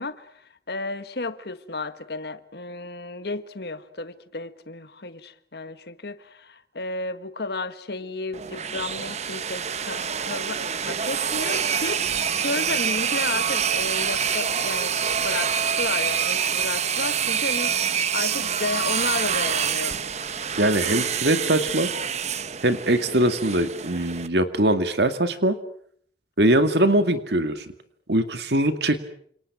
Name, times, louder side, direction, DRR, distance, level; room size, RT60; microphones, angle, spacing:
voice 1, 0.0-20.0, left 3 dB, 65° left, 1.5 m, -33 dB
sound 1, 8.3-24.3, right 7 dB, 40° right, 1.0 m, -26 dB
voice 2, 20.6-21.9 22.6-25.6 26.4-27.7 28.1-29.0, right 1 dB, 70° right, 2.1 m, -21 dB
29.0 x 27.5 x 6.1 m
head